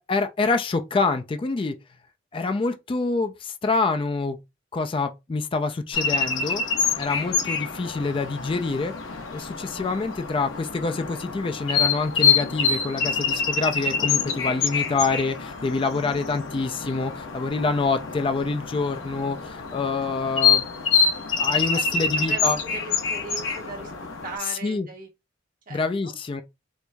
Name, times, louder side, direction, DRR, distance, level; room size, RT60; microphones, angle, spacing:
voice 1, 0.0-1.8 2.3-4.4 4.7-6.6 7.0-8.9 9.3-20.6 21.4-22.6 24.5-24.9 25.7-26.4, left 3 dB, 25° left, 0.3 m, -26 dB
sound 1, 5.9-24.4, left 6 dB, 85° left, 0.8 m, -26 dB
voice 2, 21.7-23.9 24.2-25.1 25.7-26.1, right 3 dB, 45° right, 1.2 m, -39 dB
4.5 x 2.6 x 2.2 m
head